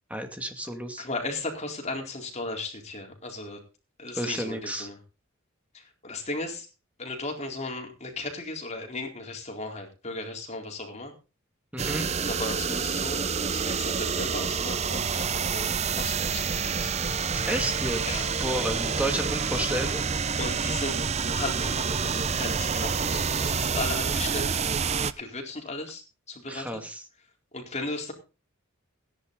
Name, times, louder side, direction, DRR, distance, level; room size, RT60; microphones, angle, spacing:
voice 1, 0.1-1.1 4.1-4.9 11.7-12.1 17.5-20.1 26.5-27.0, right 1 dB, 5° right, 5 dB, 2.4 m, -31 dB
voice 2, 1.0-3.6 4.0-5.0 5.7-6.7 7.0-11.1 12.2-16.9 18.1-18.6 20.4-21.0 21.3-24.6 25.2-26.0 26.3-26.8 27.5-28.1, left 2 dB, 30° left, 2 dB, 4.2 m, -36 dB
sound 1, 11.8-25.1, right 5 dB, 30° right, 0.6 m, -28 dB
16.5 x 10.5 x 4.0 m, 0.32 s
head